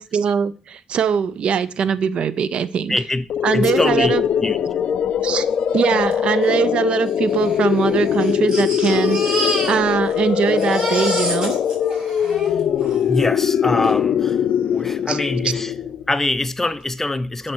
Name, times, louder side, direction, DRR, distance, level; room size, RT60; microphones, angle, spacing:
voice 1, 0.0-3.0 3.4-4.2 5.2-5.5 5.7-11.5 15.1-15.2, right 7 dB, 55° right, 0.4 m, -21 dB
voice 2, 2.9-3.3 3.5-4.1 4.4-4.6 12.2-12.4 13.0-14.4 14.7-15.7 16.1-17.5, left 2 dB, 15° left, 0.6 m, -23 dB
sound 1, 3.3-16.1, left 9 dB, 60° left, 0.4 m, -21 dB
Crying sobbing, 6.1-6.2 6.4-6.5 7.3-10.2 10.4-13.0 13.8-13.9 14.3-14.4, right 1 dB, 40° right, 3.0 m, -28 dB
10.5 x 4.3 x 3.0 m
supercardioid pair, 70°, 2 cm